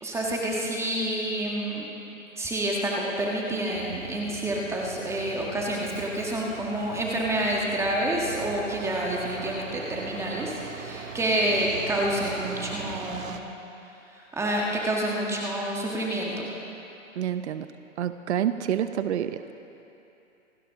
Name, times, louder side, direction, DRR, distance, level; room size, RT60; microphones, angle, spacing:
voice 1, 0.0-1.9 2.4-13.4 14.1-16.5, right 1 dB, 5° right, -2 dB, 1.5 m, -28 dB
Truck, 3.7-13.4, right 6 dB, 75° right, 1.3 m, -40 dB
voice 2, 17.2-17.7 18.0-19.4, right 10 dB, 60° right, 10 dB, 0.8 m, -27 dB
27.5 x 11.5 x 3.8 m, 2.9 s
hypercardioid pair, 140°, 39 cm